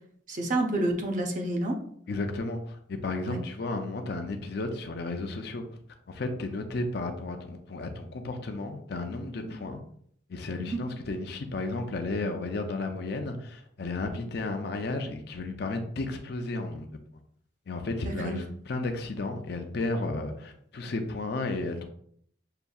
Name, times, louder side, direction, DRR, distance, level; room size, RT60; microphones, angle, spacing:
voice 1, 0.3-1.8 3.2-3.4 9.5-9.6 10.6-10.8 18.1-18.4, right 1 dB, 40° right, 1 dB, 0.7 m, -29 dB
voice 2, 2.1-5.6 6.1-9.8 10.3-16.9 17.7-21.8, left 2 dB, 55° left, 5 dB, 0.5 m, -33 dB
6.5 x 2.6 x 2.3 m, 0.65 s
head